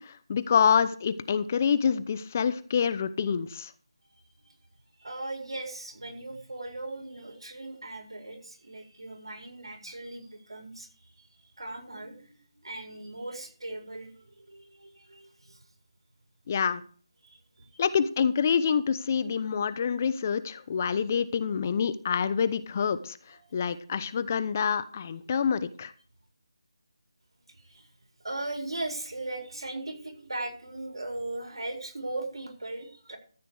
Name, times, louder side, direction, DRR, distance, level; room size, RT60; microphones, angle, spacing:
voice 1, 0.0-3.7 16.5-16.8 17.8-25.9, left 7 dB, 30° left, 14 dB, 0.8 m, -27 dB
voice 2, 5.0-11.3 11.6-15.6 17.2-17.8 23.3-23.5 25.3-25.4 27.5-27.9 28.2-33.2, right 2 dB, 75° right, 3 dB, 4.7 m, -39 dB
14.0 x 8.2 x 4.9 m, 0.43 s
figure-of-eight pair, 160°, 3 cm